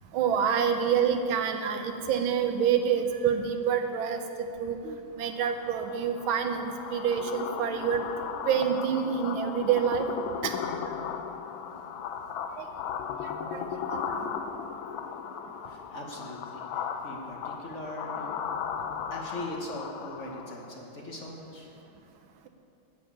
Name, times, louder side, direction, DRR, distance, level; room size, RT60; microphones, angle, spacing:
voice 1, 0.1-8.0 8.5-10.1 10.4-10.5 12.6-12.7 13.5-14.3, right 7 dB, 90° right, 6 dB, 1.7 m, -27 dB
sound 1, 5.4-20.7, left 7 dB, 80° left, 1.4 m, -36 dB
voice 2, 15.6-18.4 19.1-21.7, left 1 dB, 40° left, -1 dB, 1.4 m, -40 dB
10.5 x 6.7 x 8.9 m, 2.8 s
omnidirectional pair, 2.2 m